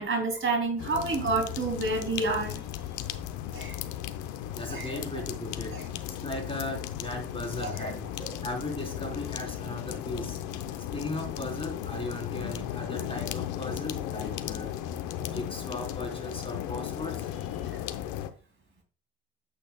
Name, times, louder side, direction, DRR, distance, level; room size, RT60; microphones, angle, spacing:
voice 1, 0.0-2.6 3.5-3.8 4.7-5.0 5.7-5.8 7.6-7.9 8.3-8.4, right 3 dB, 40° right, 4 dB, 2.8 m, -29 dB
sound 1, 0.8-18.3, left 11 dB, 70° left, 0.8 m, -36 dB
voice 2, 0.9-1.3 4.5-5.8 6.1-8.1 8.4-10.4 10.9-14.7 15.2-17.7, left 2 dB, 20° left, 3 dB, 3.5 m, -37 dB
8.7 x 8.5 x 2.2 m, 0.40 s
hypercardioid pair, 50°, 30 cm